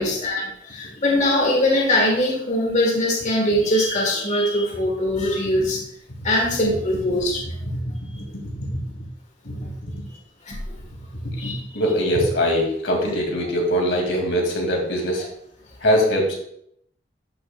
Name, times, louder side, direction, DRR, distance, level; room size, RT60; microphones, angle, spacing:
voice 1, 0.0-5.8 6.2-7.4 10.5-10.8 11.4-11.5, left 1 dB, 40° left, -1 dB, 1.4 m, -21 dB
voice 2, 7.6-8.8 9.4-9.9 11.2-15.3 15.8-16.3, equal, 85° left, 0 dB, 2.4 m, -23 dB
12.0 x 6.4 x 2.3 m, 0.72 s
head